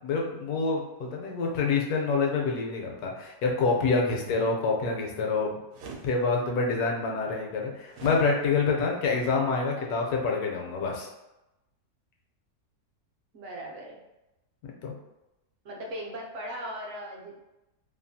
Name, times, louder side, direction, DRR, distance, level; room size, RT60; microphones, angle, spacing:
voice 1, 0.0-5.6 6.0-11.1 14.6-14.9, left 4 dB, 75° left, 0 dB, 1.1 m, -27 dB
sound 1, 5.7-6.1 7.9-8.2, right 4 dB, 90° right, 1.1 m, -41 dB
voice 2, 13.3-14.0 15.6-17.4, equal, 65° right, -2 dB, 0.9 m, -38 dB
2.9 x 2.3 x 2.6 m, 0.95 s
omnidirectional pair, 1.7 m